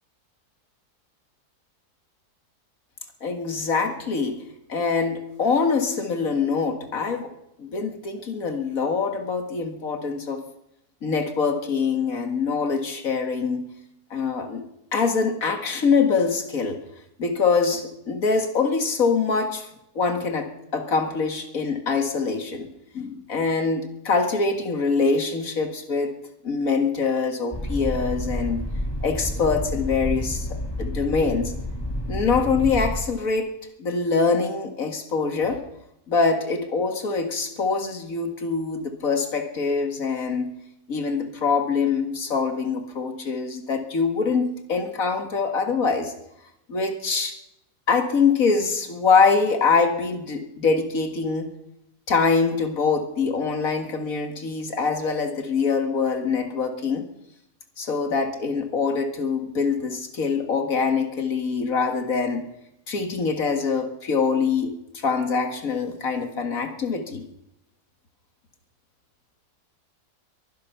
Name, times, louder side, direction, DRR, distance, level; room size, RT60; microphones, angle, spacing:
voice 1, 3.2-4.4 4.7-7.3 7.6-10.4 11.0-13.6 14.1-14.6 14.9-16.8 17.2-19.7 19.9-22.7 22.9-26.1 26.4-28.6 29.0-30.5 30.8-31.5 32.1-33.5 33.8-35.6 36.1-40.5 40.9-46.1 46.7-47.4 47.9-51.5 52.1-57.1 57.8-62.4 62.9-67.2, left 5 dB, 60° left, 6 dB, 2.3 m, -24 dB
sound 1, 27.5-33.0, left 1 dB, 15° left, 2.3 m, -29 dB
22.5 x 10.5 x 5.8 m, 0.83 s
omnidirectional pair, 1.7 m